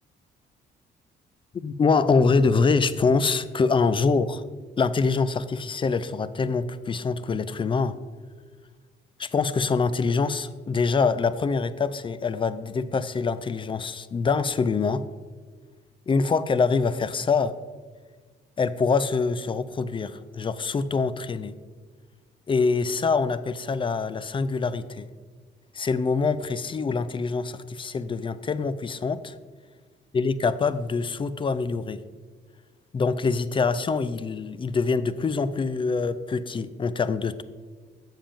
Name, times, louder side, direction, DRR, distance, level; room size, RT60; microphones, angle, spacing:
voice 1, 1.6-4.4 4.8-8.0 9.2-15.0 16.1-17.5 18.6-21.6 22.5-25.1 25.8-29.3 30.1-32.0 32.9-37.4, left 4 dB, 25° left, 15 dB, 0.4 m, -25 dB
7.3 x 7.3 x 3.4 m, 1.5 s
cardioid pair, 90°, 20 cm